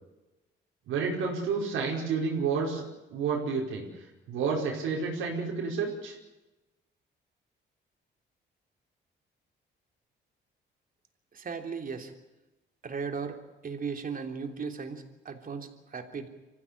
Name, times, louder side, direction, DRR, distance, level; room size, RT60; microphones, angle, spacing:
voice 1, 0.9-2.8 3.1-6.2, right 5 dB, 85° right, -2 dB, 5.3 m, -30 dB
voice 2, 11.3-12.1 12.8-16.3, right 5 dB, 45° right, 6 dB, 3.3 m, -37 dB
25.0 x 15.5 x 9.9 m, 1.0 s
cardioid pair, 90°, 20 cm